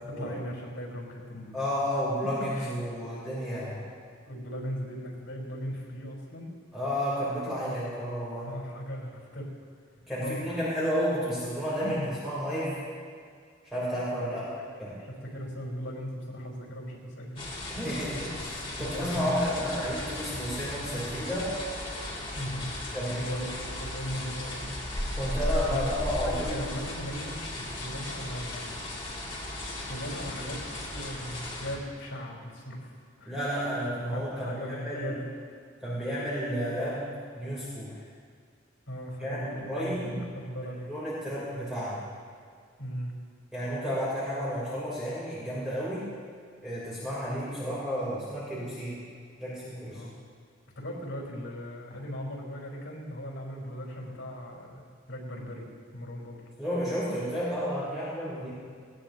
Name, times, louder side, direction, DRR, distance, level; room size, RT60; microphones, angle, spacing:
voice 1, 0.1-1.6 1.9-2.0 2.5-2.7 4.3-6.5 8.4-9.5 10.2-10.7 11.8-12.1 15.0-18.2 18.7-19.8 22.4-22.7 23.1-24.8 25.7-25.8 26.1-28.7 29.9-30.6 30.9-32.9 33.2-33.3 34.1-35.3 38.9-40.9 42.8-43.2 49.9-50.2 50.7-56.4 58.4-58.5, equal, 70° left, -2 dB, 4.7 m, -38 dB
voice 2, 1.5-3.8 6.7-8.5 10.1-12.8 13.7-14.5 14.8-15.0 17.7-21.5 22.9-23.4 25.1-26.6 33.3-35.2 35.8-37.1 37.4-38.0 39.2-40.2 40.6-42.1 43.5-46.1 46.6-49.1 49.4-50.0 56.6-58.5, equal, ahead, -10 dB, 3.9 m, -32 dB
sound 1, 17.4-31.8, left 1 dB, 25° left, 3.0 m, -36 dB
19.5 x 18.0 x 3.0 m, 2.2 s
head